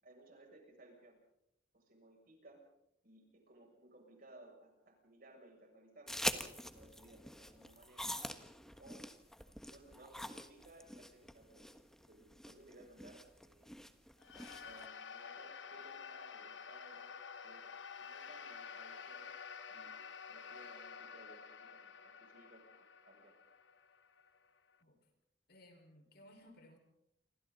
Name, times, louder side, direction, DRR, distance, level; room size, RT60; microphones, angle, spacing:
voice 1, 0.0-1.2 1.7-2.6 3.0-8.1 8.8-9.1 9.7-11.7 12.1-13.7 14.6-17.1 17.4-17.7 18.0-19.3 19.7-20.0 20.3-23.4, right 2 dB, 50° right, 1 dB, 7.4 m, -60 dB
sound 1, 6.1-14.9, left 1 dB, 5° left, 1.3 m, -45 dB
sound 2, 14.2-24.8, left 6 dB, 70° left, 1.2 m, -50 dB
voice 2, 25.5-26.8, left 1 dB, 55° left, 4 dB, 5.2 m, -60 dB
28.5 x 26.0 x 4.1 m, 0.79 s
head